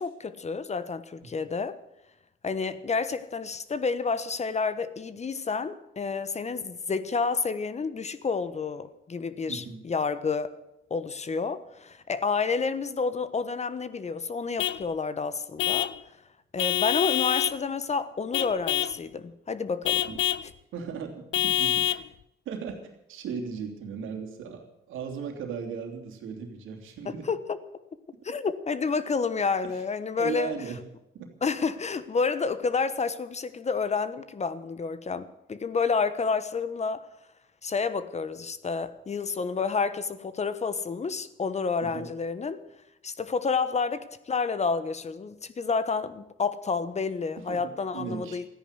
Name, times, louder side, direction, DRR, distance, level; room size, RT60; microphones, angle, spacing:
voice 1, 0.0-1.8 2.4-10.5 10.9-15.9 16.5-20.0 27.0-27.6 28.2-30.5 31.4-37.1 37.6-42.6 43.0-48.4, left 5 dB, 35° left, 1.2 m, -29 dB
voice 2, 9.5-9.8 20.0-20.2 20.7-22.0 22.4-22.8 23.1-27.3 29.6-29.7 30.1-30.8 31.1-31.3 41.8-42.1 47.5-48.4, right 6 dB, 85° right, 2.9 m, -37 dB
Vehicle horn car horn honking / Truck, 14.6-14.9 15.6-16.0 16.6-17.6 18.3-19.0 19.8-20.5 21.3-22.1, left 13 dB, 70° left, 0.7 m, -26 dB
14.0 x 10.0 x 9.8 m
cardioid pair, 90°, 20 cm